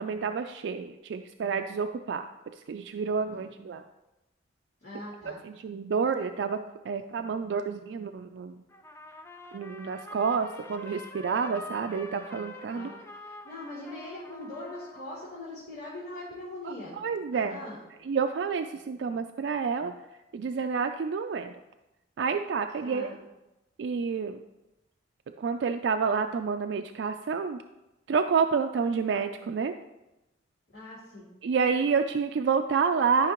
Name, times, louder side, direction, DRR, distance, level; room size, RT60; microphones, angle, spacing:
voice 1, 0.0-2.2 2.6-3.8 5.3-6.6 6.8-8.6 9.5-12.9 16.6-17.6 18.0-20.0 20.3-21.6 22.2-23.2 23.8-24.4 25.4-27.6 28.1-29.7 31.4-33.3, right 5 dB, 75° right, 7 dB, 0.3 m, -29 dB
voice 2, 4.8-5.4 12.7-12.9 13.2-17.0 17.3-17.8 22.8-23.2 30.7-31.2, left 1 dB, 60° left, -9 dB, 2.7 m, -41 dB
Trumpet, 8.7-15.5, left 2 dB, 15° left, 0.5 m, -46 dB
12.5 x 5.7 x 3.0 m, 0.99 s
head